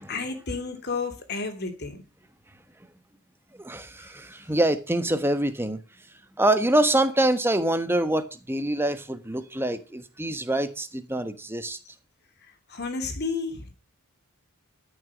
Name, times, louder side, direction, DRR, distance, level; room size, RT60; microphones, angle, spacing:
voice 1, 0.0-2.0 4.0-4.1 12.7-13.7, left 4 dB, 50° left, 2.7 m, -32 dB
voice 2, 3.6-5.8 6.4-11.8, right 1 dB, 10° right, 1.2 m, -25 dB
13.5 x 6.7 x 6.1 m
head